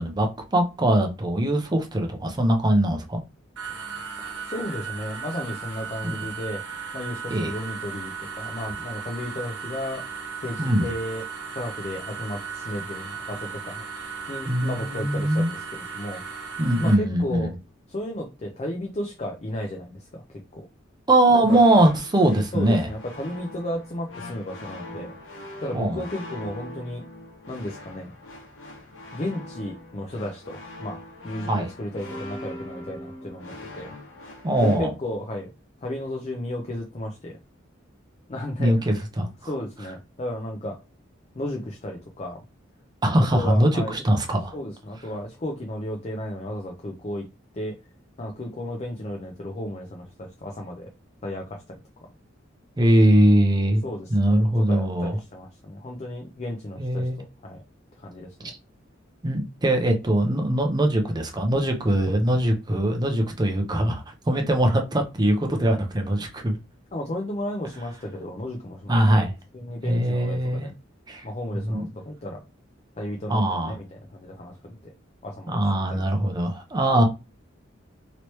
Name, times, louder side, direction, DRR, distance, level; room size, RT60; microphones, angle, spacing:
voice 1, 0.0-3.2 6.0-6.2 7.3-7.5 10.6-10.9 14.5-15.5 16.6-17.5 21.1-22.9 25.7-26.0 31.5-31.7 34.4-34.9 38.6-39.3 43.0-44.5 52.8-53.8 54.1-55.2 56.8-57.2 59.2-66.6 68.9-69.3 69.8-70.7 71.1-71.2 71.5-71.8 73.3-73.8 75.5-77.1, right 1 dB, 20° right, 0.6 m, -21 dB
sound 1, 3.6-16.9, right 6 dB, 70° right, 1.0 m, -36 dB
voice 2, 4.5-6.6 6.9-10.0 10.4-11.2 11.5-13.8 14.3-16.2 16.8-17.5 17.9-20.2 20.5-20.7 21.3-21.6 22.5-25.1 25.6-27.0 27.5-28.1 29.1-31.0 31.2-33.9 34.6-35.5 35.8-37.4 38.3-38.9 39.4-40.8 41.3-42.4 43.2-44.0 44.5-47.3 47.5-47.8 48.2-50.9 51.2-51.8 53.8-57.6 58.0-58.5 66.9-69.0 69.5-70.7 71.2-72.4 73.0-74.9 75.2-76.0 76.9-77.0, left 1 dB, 35° left, 0.5 m, -34 dB
sound 2, 21.4-34.8, left 1 dB, 80° left, 1.0 m, -41 dB
3.0 x 3.0 x 3.1 m
head